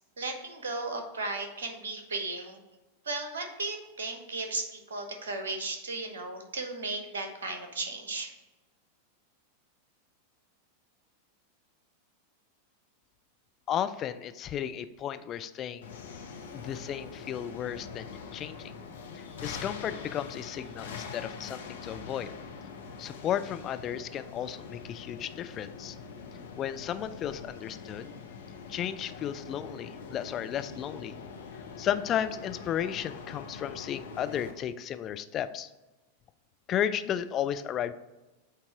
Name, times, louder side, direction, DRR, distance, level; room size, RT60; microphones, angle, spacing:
voice 1, 0.2-2.6 3.0-8.3, right 3 dB, 65° right, 6 dB, 1.0 m, -35 dB
voice 2, 13.7-15.9 16.5-18.7 19.1-22.3 23.0-26.0 26.6-28.1 28.7-31.1 31.8-35.7 36.7-37.9, left 10 dB, 30° left, 11 dB, 0.3 m, -34 dB
sound 1, 15.8-34.5, left 5 dB, 60° left, 0.7 m, -44 dB
8.0 x 2.9 x 4.5 m, 1.1 s
figure-of-eight pair, 90°, 0 cm